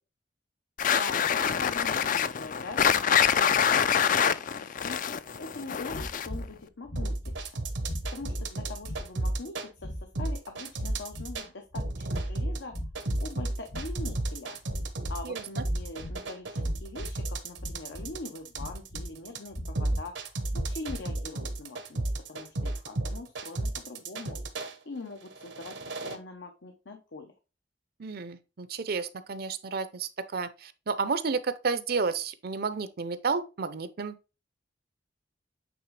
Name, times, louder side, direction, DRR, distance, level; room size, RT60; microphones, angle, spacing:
sound 1, 0.8-6.5, left 8 dB, 45° left, 0.4 m, -25 dB
voice 1, 0.9-5.0 5.4-7.3 8.1-12.7 13.2-14.6 15.1-24.4 24.8-25.8 26.0-27.3, left 3 dB, 85° left, 1.0 m, -43 dB
sound 2, 5.9-6.5 6.9-7.5 7.8-8.5 8.8-9.4 9.8-10.3 10.7-11.4 11.7-12.4 12.7-13.3 13.7-14.2 14.6-15.3 15.6-16.2 16.6-17.1 17.6-18.2 18.5-19.1 19.5-20.1 20.5-21.1, equal, 65° left, 2.6 m, -37 dB
sound 3, 7.0-9.7 10.2-11.5 11.8-24.7 25.3-26.2, right 2 dB, 80° right, 1.0 m, -33 dB
voice 2, 28.0-34.2, right 4 dB, 55° right, 0.6 m, -31 dB
8.5 x 3.6 x 3.2 m
head